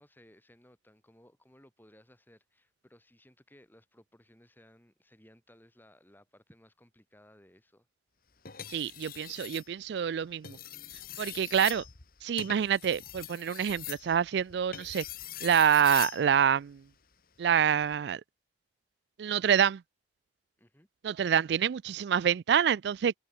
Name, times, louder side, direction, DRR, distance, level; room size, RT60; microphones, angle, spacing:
voice 1, 0.0-7.9 20.6-20.9, left 1 dB, 10° left, 5.7 m, -60 dB
sound 1, 8.5-9.7 10.3-16.2 17.7-18.0, left 11 dB, 55° left, 1.6 m, -42 dB
voice 2, 8.7-10.6 11.2-11.8 12.2-15.0 15.4-16.8 17.4-18.2 19.2-19.8 21.0-23.1, right 8 dB, 70° right, 0.3 m, -26 dB
head